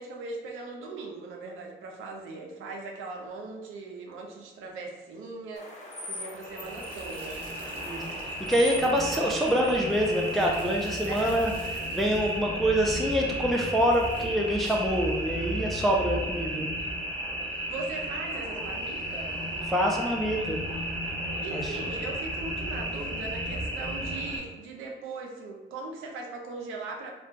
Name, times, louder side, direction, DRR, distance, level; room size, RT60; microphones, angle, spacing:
voice 1, 0.0-7.5 11.0-11.4 17.5-19.4 21.4-27.1, right 3 dB, 90° right, 1 dB, 0.6 m, -39 dB
sound 1, 5.6-10.6, left 2 dB, 35° left, 0.8 m, -42 dB
sound 2, 6.4-24.4, right 1 dB, 25° right, 1.1 m, -34 dB
voice 2, 7.9-11.5 11.9-16.7 19.7-20.6 21.5-21.7, equal, ahead, 0 dB, 0.3 m, -26 dB
2.3 x 2.2 x 3.8 m, 1.2 s
cardioid pair, 90°, 20 cm